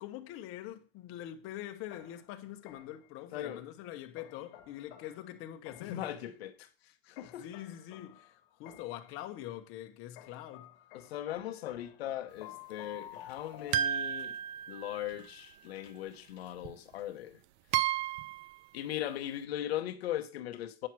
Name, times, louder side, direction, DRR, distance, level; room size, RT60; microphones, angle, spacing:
voice 1, 0.0-6.0 7.4-10.7, left 12 dB, 45° left, 1.1 m, -44 dB
sound 1, 1.9-3.1 4.2-6.1 7.2-9.1 10.2-14.4, left 12 dB, 60° left, 1.5 m, -52 dB
voice 2, 3.3-3.6 5.8-7.5 10.9-14.4 14.7-17.4 18.7-20.9, left 12 dB, 85° left, 1.0 m, -39 dB
sound 2, 13.7-15.2 16.6-16.7 17.7-18.6, right 11 dB, 55° right, 0.7 m, -32 dB
8.8 x 5.8 x 4.6 m
supercardioid pair, 135°, 30 cm